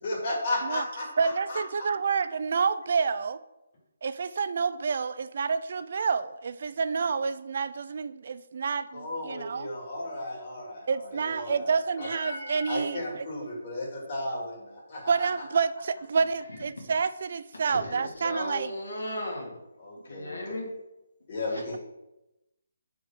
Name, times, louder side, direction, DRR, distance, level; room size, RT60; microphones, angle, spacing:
voice 1, 0.0-1.6 8.9-15.3 19.8-20.6 21.3-21.8, left 2 dB, 40° left, -3 dB, 2.4 m, -35 dB
voice 2, 1.2-3.4 4.0-9.7 10.9-13.5 15.1-18.7, right 5 dB, 55° right, 14 dB, 0.3 m, -29 dB
voice 3, 17.7-19.6 20.0-20.7 21.5-21.6, left 1 dB, 80° left, -1 dB, 2.0 m, -36 dB
4.9 x 4.6 x 5.7 m, 0.94 s
figure-of-eight pair, 150°, 0 cm